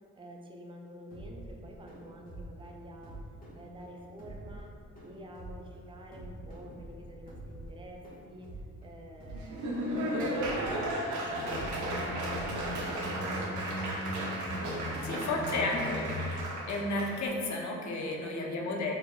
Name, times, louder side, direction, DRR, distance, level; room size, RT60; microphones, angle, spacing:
voice 1, 0.2-3.3 3.5-14.2 14.6-15.7 17.8-18.9, right 1 dB, 15° right, 1 dB, 0.5 m, -48 dB
sound 1, 1.1-13.4, right 1 dB, 30° left, 1.4 m, -47 dB
Laughter / Applause, 9.3-17.2, right 1 dB, 75° right, 0.8 m, -35 dB
sound 2, 11.3-16.3, left 1 dB, 85° left, 1.2 m, -39 dB
voice 2, 15.1-16.0 16.7-18.9, left 2 dB, 70° left, 0 dB, 0.7 m, -32 dB
4.5 x 3.4 x 2.3 m, 2.4 s
cardioid pair, 90°, 30 cm